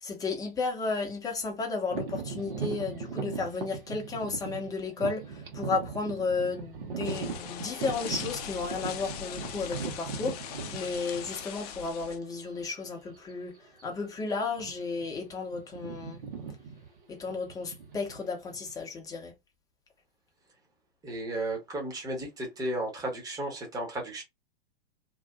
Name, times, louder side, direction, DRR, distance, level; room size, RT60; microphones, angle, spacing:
voice 1, 0.0-16.2 17.1-19.3, left 4 dB, 10° left, 0.8 m, -33 dB
sound 1, 1.9-11.7 12.3-12.4 13.1-13.3 13.6-13.8 14.5-15.0 15.3-18.7, right 5 dB, 65° right, 1.2 m, -38 dB
sound 2, 7.0-12.2, left 8 dB, 40° left, 0.5 m, -40 dB
voice 2, 21.0-24.2, right 1 dB, 10° right, 1.1 m, -34 dB
2.8 x 2.4 x 2.2 m
figure-of-eight pair, 105°, 30 cm